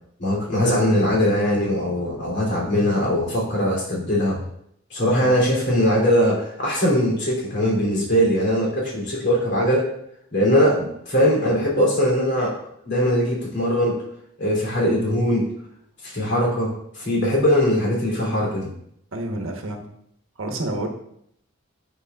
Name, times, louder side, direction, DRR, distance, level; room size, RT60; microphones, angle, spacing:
voice 1, 0.2-4.4 4.9-9.9 10.3-12.5 12.8-14.0 14.4-15.4 16.0-18.7, equal, 60° left, -4 dB, 2.8 m, -21 dB
voice 2, 19.1-19.9 20.4-20.9, right 1 dB, 80° right, 3 dB, 1.0 m, -29 dB
10.0 x 4.7 x 2.3 m, 0.73 s
head